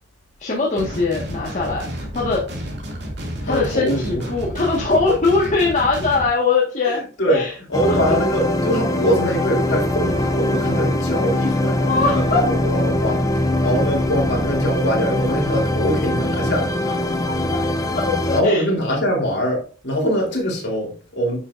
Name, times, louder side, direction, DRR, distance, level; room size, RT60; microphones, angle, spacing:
voice 1, 0.4-1.8 2.1-2.4 3.5-7.0 7.3-7.5 7.8-8.2 11.9-12.5 18.0-18.7, left 3 dB, 35° left, 1.6 m, -21 dB
sound 1, 0.8-6.3, equal, 55° right, 2.4 m, -31 dB
voice 2, 3.4-4.2 6.8-7.4 7.7-16.7 18.3-21.4, equal, 55° left, 3.6 m, -23 dB
sound 2, 7.7-18.4, left 1 dB, 15° left, 0.8 m, -22 dB
9.7 x 6.4 x 2.6 m
head